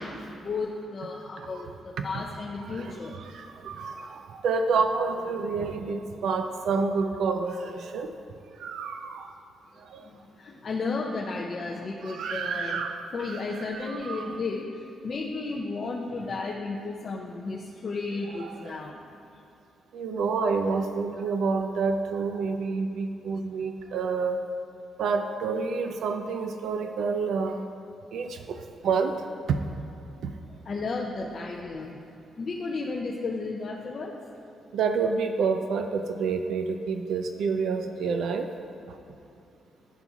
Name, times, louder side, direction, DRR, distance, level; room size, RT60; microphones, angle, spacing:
voice 1, 0.2-3.2 10.0-12.8 13.1-19.0 19.3-19.4 30.6-32.0 32.4-34.1, left 3 dB, 35° left, -2 dB, 0.4 m, -33 dB
voice 2, 2.7-8.1 8.6-9.3 9.8-10.1 12.0-14.4 18.4-18.8 19.9-24.4 25.0-27.6 28.1-29.6 30.2-30.3 34.7-38.5 38.9-39.0, right 5 dB, 70° right, 6 dB, 0.3 m, -29 dB
11.0 x 3.9 x 2.4 m, 2.7 s
wide cardioid pair, 165°, 0 cm